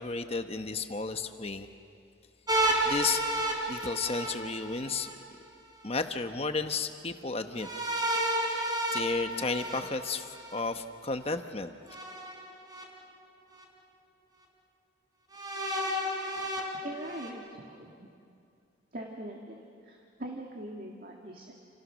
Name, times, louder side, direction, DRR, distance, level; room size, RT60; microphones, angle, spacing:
voice 1, 0.0-1.7 2.8-3.2 3.7-5.1 5.8-7.7 8.9-11.7, left 4 dB, 30° left, 7 dB, 1.1 m, -33 dB
sound 1, 2.5-5.1 7.6-10.6 11.9-12.8 13.6-13.7 15.3-17.3, right 1 dB, 20° right, 3.6 m, -32 dB
voice 2, 16.8-18.1 18.9-21.5, right 1 dB, 45° right, 0 dB, 2.2 m, -42 dB
29.5 x 29.0 x 6.4 m, 2.4 s
head